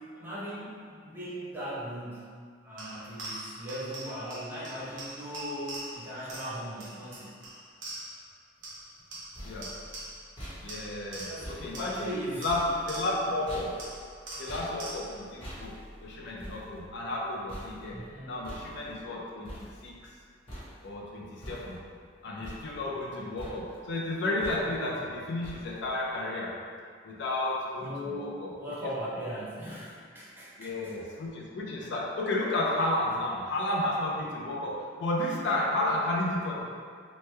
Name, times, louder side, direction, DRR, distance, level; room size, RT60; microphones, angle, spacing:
voice 1, 0.2-7.3 11.1-12.6 17.9-18.4 24.8-25.0 27.8-30.9, equal, 10° right, -9 dB, 0.6 m, -39 dB
sound 1, 2.8-8.3 8.6-10.4 10.7-13.4 13.8-15.3, right 1 dB, 85° right, 0.9 m, -43 dB
sound 2, 9.0-20.2 20.5-21.1 21.4-22.1 22.4-23.1 23.4-23.9 24.4-25.0 25.4-26.0, equal, 30° left, 1.0 m, -46 dB
voice 2, 9.4-9.7 10.6-12.1 12.4-13.8 14.4-15.7 16.0-18.0 18.3-20.1 20.8-21.8 22.2-26.6 27.0-28.5 30.6-36.6, left 1 dB, 65° left, -2 dB, 0.4 m, -32 dB
3.0 x 2.1 x 3.2 m, 2.1 s
head